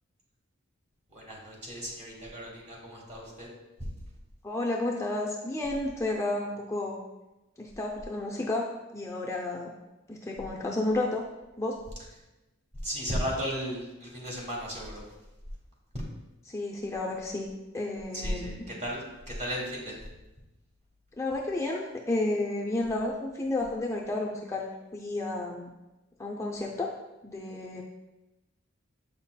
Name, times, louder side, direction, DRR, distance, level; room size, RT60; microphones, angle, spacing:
voice 1, 1.1-3.5 12.8-15.0 18.1-20.0, equal, 35° right, -3 dB, 1.8 m, -35 dB
voice 2, 4.4-7.0 7.6-8.7 8.9-9.7 10.1-11.2 11.6-11.8 16.5-18.7 21.2-25.7 26.2-26.9 27.2-27.8, left 2 dB, 15° left, -2 dB, 0.5 m, -31 dB
8.0 x 5.5 x 2.2 m, 1.0 s
head